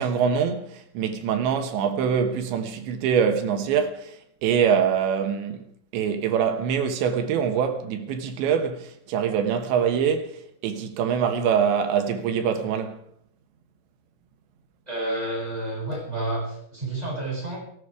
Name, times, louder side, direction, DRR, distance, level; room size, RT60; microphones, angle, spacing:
voice 1, 0.0-4.2 4.4-5.7 5.9-13.0, right 7 dB, 70° right, 3.4 m, -24 dB
voice 2, 14.9-17.6, right 2 dB, 5° right, 7.8 m, -30 dB
17.5 x 17.0 x 5.0 m
omnidirectional pair, 5.8 m